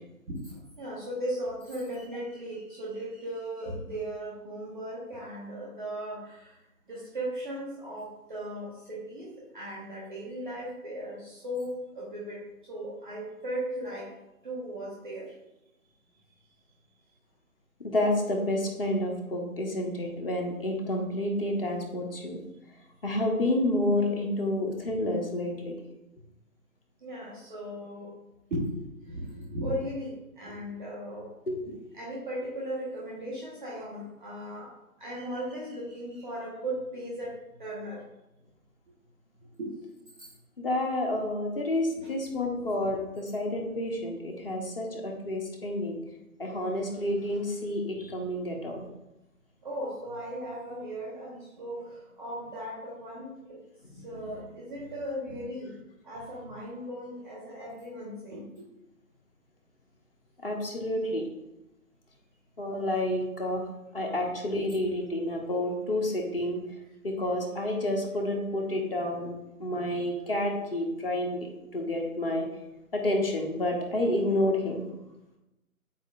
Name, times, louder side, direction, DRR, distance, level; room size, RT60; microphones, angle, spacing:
voice 1, 0.4-6.6 6.9-14.1 14.4-15.3 27.0-28.1 28.5-31.3 31.7-34.7 35.0-38.0 39.6-39.7 40.2-40.3 42.7-42.8 49.6-53.6 54.0-55.7 56.0-58.6 64.2-64.3, equal, 5° right, -5 dB, 0.6 m, -37 dB
voice 2, 17.8-22.4 23.0-25.7 31.5-31.6 40.6-46.0 46.4-48.9 53.8-54.2 60.4-61.3 62.6-63.6 63.9-66.6 67.0-69.3 69.6-72.5 72.9-74.9, left 1 dB, 40° left, 1 dB, 1.2 m, -29 dB
9.5 x 4.2 x 2.5 m, 0.94 s
figure-of-eight pair, 150°, 43 cm